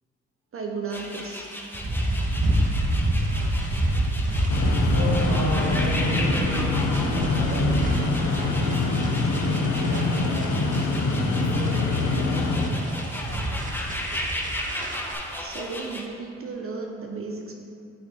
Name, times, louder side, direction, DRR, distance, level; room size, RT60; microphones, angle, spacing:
voice 1, 0.5-1.5 15.4-17.5, right 4 dB, 50° right, 1 dB, 0.7 m, -34 dB
sound 1, 0.9-16.1, left 1 dB, 5° left, 0.7 m, -35 dB
sound 2, 1.7-15.1, right 1 dB, 25° right, 1.0 m, -28 dB
sound 3, 4.5-12.7, left 3 dB, 85° left, 0.7 m, -24 dB
voice 2, 4.7-10.9 11.3-12.4 13.2-13.6, right 1 dB, 65° right, -4 dB, 1.7 m, -36 dB
6.2 x 5.7 x 4.4 m, 2.5 s
cardioid pair, 85°, 29 cm